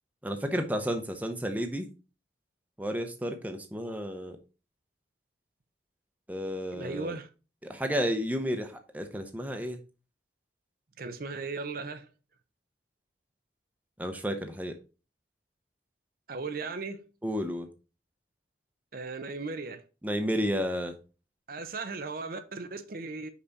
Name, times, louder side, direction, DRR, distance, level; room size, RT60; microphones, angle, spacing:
voice 1, 0.2-1.9 2.8-4.4 6.3-7.2 7.6-9.8 14.0-14.7 17.2-17.7 20.0-20.9, equal, 10° right, 0.7 m, -32 dB
voice 2, 6.7-7.3 11.0-12.1 16.3-17.0 18.9-19.8 21.5-23.3, right 3 dB, 50° right, 0.6 m, -37 dB
5.6 x 4.9 x 4.1 m
head